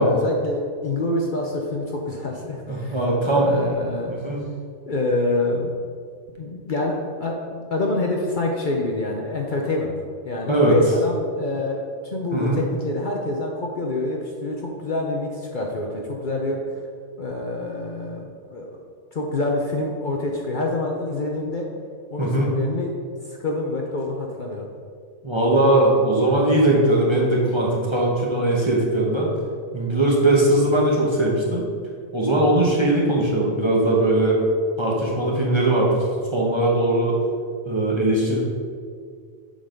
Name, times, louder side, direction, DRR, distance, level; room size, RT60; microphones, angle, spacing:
voice 1, 0.0-3.0 3.2-4.2 4.9-5.7 6.4-9.9 10.2-16.8 17.2-18.8 19.1-21.7 22.1-22.9 23.2-24.7, left 2 dB, 50° left, 0 dB, 0.7 m, -26 dB
voice 2, 2.7-3.5 4.1-4.4 10.5-10.7 12.3-12.6 22.2-22.6 25.2-29.3 29.7-31.7 32.1-34.4 34.8-35.9 36.3-37.2 37.6-38.4, right 1 dB, 25° right, -3 dB, 1.0 m, -20 dB
7.1 x 4.0 x 5.1 m, 2.1 s
omnidirectional pair, 1.2 m